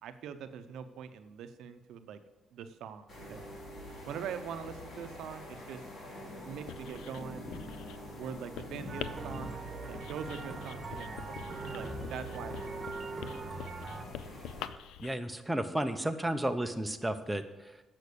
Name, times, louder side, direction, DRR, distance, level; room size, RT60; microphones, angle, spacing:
voice 1, 0.0-2.2 2.5-3.4 4.1-5.8 6.3-7.5 8.2-9.6 9.9-11.4 11.7-12.6, right 7 dB, 80° right, 10 dB, 0.6 m, -43 dB
sound 1, 3.1-14.7, equal, 55° left, 2.8 m, -45 dB
Writing, 6.5-15.1, left 10 dB, 90° left, 0.4 m, -46 dB
sound 2, 8.9-14.1, right 4 dB, 35° right, 1.1 m, -43 dB
voice 2, 15.0-17.8, right 1 dB, 5° right, 7 dB, 0.7 m, -33 dB
8.2 x 5.9 x 6.7 m, 1.1 s
cardioid pair, 90°, 0 cm